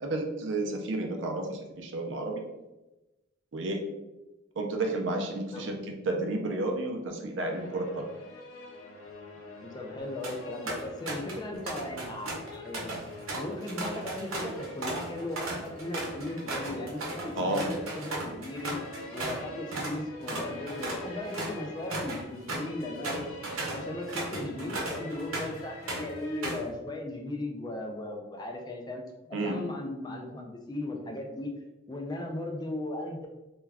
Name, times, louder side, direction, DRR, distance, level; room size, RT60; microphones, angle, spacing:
voice 1, 0.0-2.4 3.5-3.8 4.6-5.8 6.1-8.1 17.4-17.7 29.3-29.6, right 2 dB, 60° right, 2 dB, 0.4 m, -31 dB
sound 1, 7.4-26.6, left 2 dB, 80° left, 0.5 m, -46 dB
voice 2, 9.6-13.0 13.3-18.8 19.1-23.3 23.7-29.0 29.3-31.5 31.9-33.3, left 1 dB, 20° left, 1 dB, 0.3 m, -37 dB
sound 2, 10.0-10.4 10.7-11.4 11.7-19.4 19.7-20.0 20.3-25.6 25.9-26.7, right 2 dB, 80° right, 0.8 m, -36 dB
2.3 x 2.2 x 3.3 m, 1.0 s
head